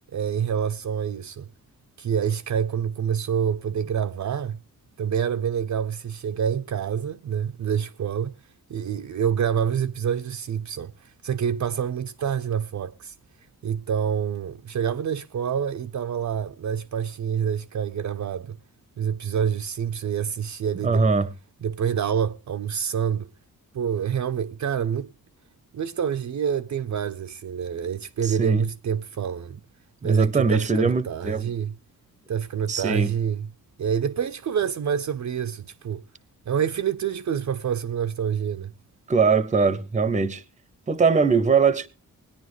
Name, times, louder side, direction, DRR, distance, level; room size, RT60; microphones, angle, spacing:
voice 1, 0.1-1.5 2.0-4.6 5.0-8.3 8.7-10.9 11.2-13.1 13.6-18.6 19.0-21.1 21.6-23.3 23.7-25.1 25.7-29.6 30.0-31.7 32.3-33.5 33.8-36.0 36.5-38.7, right 8 dB, 55° right, 0.6 m, -27 dB
voice 2, 20.8-21.3 28.2-28.6 30.0-31.4 32.7-33.1 39.1-40.4 40.9-41.9, right 4 dB, 20° right, 0.7 m, -21 dB
20.0 x 10.0 x 3.1 m
wide cardioid pair, 175°, 34 cm